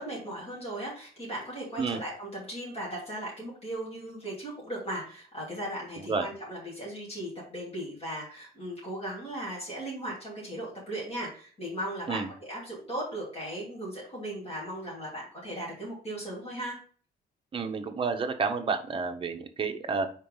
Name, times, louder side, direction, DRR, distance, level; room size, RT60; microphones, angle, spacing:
voice 1, 0.0-16.8, right 1 dB, 35° left, -6 dB, 3.1 m, -37 dB
voice 2, 6.0-6.3 12.1-12.3 17.5-20.1, right 4 dB, 30° right, 6 dB, 0.8 m, -30 dB
4.5 x 4.4 x 5.4 m, 0.43 s
cardioid pair, 165°, 17 cm